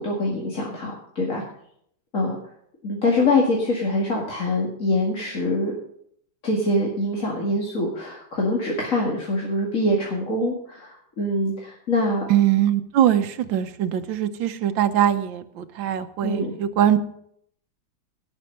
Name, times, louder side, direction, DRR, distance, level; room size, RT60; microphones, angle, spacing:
voice 1, 0.0-1.4 2.1-2.4 2.8-5.7 6.4-12.3 16.2-16.5, left 1 dB, 40° left, -2 dB, 2.5 m, -24 dB
voice 2, 12.3-17.0, right 11 dB, 75° right, 10 dB, 1.5 m, -22 dB
17.5 x 6.3 x 6.6 m, 0.69 s
omnidirectional pair, 2.1 m